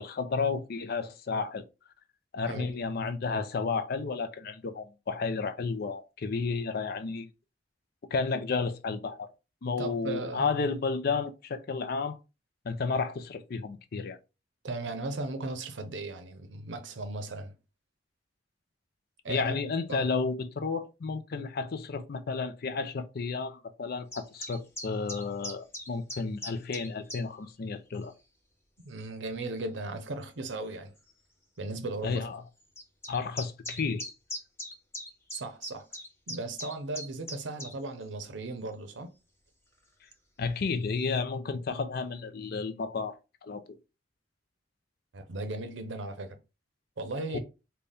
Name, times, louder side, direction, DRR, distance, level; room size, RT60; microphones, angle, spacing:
voice 1, 0.0-1.6 2.3-7.3 8.1-9.3 9.6-12.2 12.6-14.2 19.3-28.1 32.0-32.4 33.1-34.0 40.4-43.6 47.3-47.4, left 4 dB, 55° left, 0.5 m, -32 dB
voice 2, 9.8-10.4 14.6-17.5 19.2-19.6 19.9-20.1 28.8-30.9 31.6-32.3 35.3-35.9 36.3-39.1 45.1-46.4 47.0-47.4, right 2 dB, 90° right, 0.7 m, -36 dB
sound 1, 24.1-27.2 27.9-28.1 29.0-29.1 30.2-30.3 30.6-30.7 31.0-31.1 32.8-37.7, left 1 dB, 15° left, 0.9 m, -40 dB
4.0 x 2.3 x 3.4 m
head